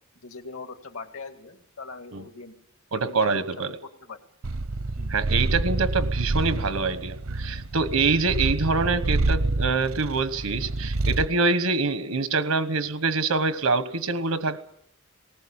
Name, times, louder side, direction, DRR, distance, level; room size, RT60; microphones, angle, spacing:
voice 1, 0.2-2.6 2.9-3.4 3.8-4.2 4.9-5.1, left 4 dB, 75° left, 7 dB, 2.2 m, -41 dB
voice 2, 2.9-3.7 5.1-14.6, right 4 dB, 90° right, 11 dB, 1.2 m, -25 dB
Purr, 4.4-11.4, right 2 dB, 70° right, 0.8 m, -27 dB
19.5 x 18.5 x 8.8 m, 0.72 s
head